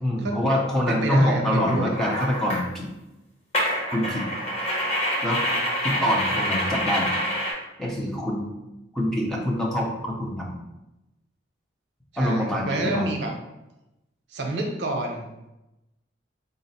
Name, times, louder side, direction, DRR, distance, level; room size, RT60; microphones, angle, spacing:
voice 1, 0.0-2.9 3.9-4.3 5.2-5.4 5.8-7.1 7.8-8.5 8.9-10.5 12.2-13.1, left 1 dB, 5° left, -3 dB, 0.5 m, -25 dB
voice 2, 0.9-1.9 12.2-13.3 14.3-15.3, right 2 dB, 65° right, 1 dB, 0.6 m, -28 dB
sound 1, 1.7-2.6 3.5-7.5, equal, 35° left, 0.9 m, -26 dB
4.0 x 2.0 x 4.0 m, 0.94 s
head